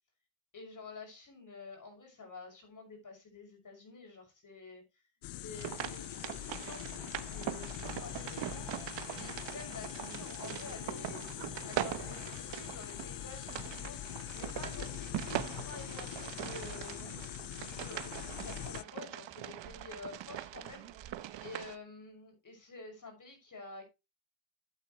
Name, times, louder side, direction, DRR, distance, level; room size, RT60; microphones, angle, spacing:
voice 1, 0.5-4.8 5.3-8.7 9.1-11.2 11.6-14.0 14.3-20.9 21.4-23.8, left 3 dB, 40° left, 6.2 m, -50 dB
sound 1, 5.2-18.8, left 15 dB, 60° left, 0.5 m, -43 dB
sound 2, 5.5-21.8, right 12 dB, 60° right, 0.9 m, -42 dB
sound 3, 7.8-17.1, left 1 dB, 10° left, 1.6 m, -57 dB
12.5 x 8.4 x 3.1 m
cardioid pair, 100°, 49 cm